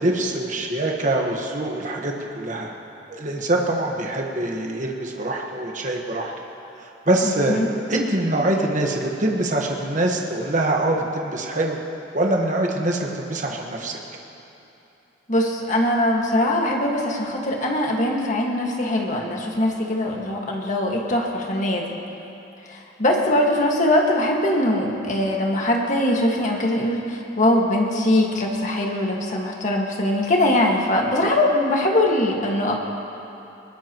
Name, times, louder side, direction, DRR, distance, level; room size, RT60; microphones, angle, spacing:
voice 1, 0.0-2.7 3.1-6.3 6.8-7.6 7.9-11.8 12.1-14.0, right 1 dB, 40° right, 1 dB, 1.4 m, -24 dB
voice 2, 7.2-7.7 15.3-21.9 22.7-32.7, left 1 dB, 40° left, -1 dB, 1.9 m, -22 dB
20.5 x 20.0 x 3.1 m, 2.9 s
head